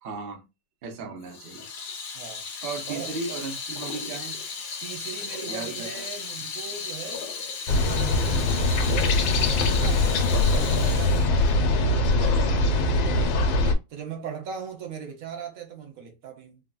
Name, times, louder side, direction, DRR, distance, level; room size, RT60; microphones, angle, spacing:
voice 1, 0.0-0.5 0.8-1.7 2.6-4.4 5.5-5.9, right 4 dB, 75° right, 0.5 m, -35 dB
Water tap faucet / Sink (filling or washing), 1.3-12.6, left 5 dB, 65° left, 1.2 m, -35 dB
voice 2, 4.8-7.3 7.7-13.5 13.9-16.6, right 7 dB, 60° right, 1.0 m, -40 dB
sound 1, 7.7-13.7, left 2 dB, 90° left, 1.5 m, -22 dB
3.8 x 2.1 x 2.3 m
omnidirectional pair, 2.1 m